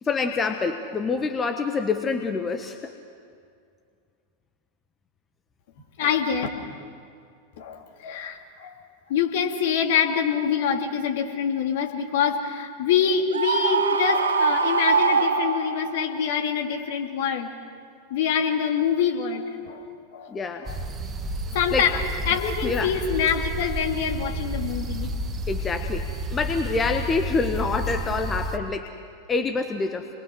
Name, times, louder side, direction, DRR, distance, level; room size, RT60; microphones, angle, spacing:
voice 1, 0.0-2.9 20.3-20.7 21.7-21.9 22.6-22.9 25.5-28.9 29.3-30.1, left 4 dB, 20° left, 6 dB, 1.1 m, -26 dB
voice 2, 6.0-6.5 7.6-8.7 9.1-17.5 18.1-19.8 20.1-20.3 20.6-20.8 21.5-22.0 22.3-25.1, left 7 dB, 55° left, 3 dB, 2.4 m, -25 dB
Screaming, 13.3-16.0, right 5 dB, 70° right, 3.2 m, -22 dB
sound 1, 20.7-28.6, right 1 dB, 20° right, 1.3 m, -31 dB
28.0 x 21.5 x 6.2 m, 2.3 s
figure-of-eight pair, 90°, 0 cm